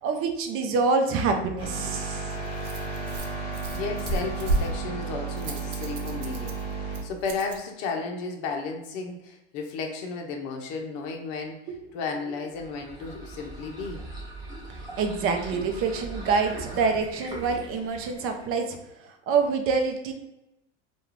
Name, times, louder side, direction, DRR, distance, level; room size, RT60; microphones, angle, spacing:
voice 1, 0.0-2.3 14.7-20.1, right 4 dB, 40° right, 5 dB, 0.5 m, -26 dB
sound 1, 1.6-7.0, right 4 dB, 25° left, 1.2 m, -33 dB
Rattle, 1.6-7.6, right 2 dB, 85° right, 0.5 m, -34 dB
voice 2, 3.7-11.6 11.9-14.0 14.6-14.7, left 4 dB, 60° left, 2 dB, 0.6 m, -34 dB
sound 2, 12.5-18.5, right 2 dB, 10° right, 0.8 m, -41 dB
2.3 x 2.3 x 3.2 m, 0.93 s
hypercardioid pair, 90°, 36 cm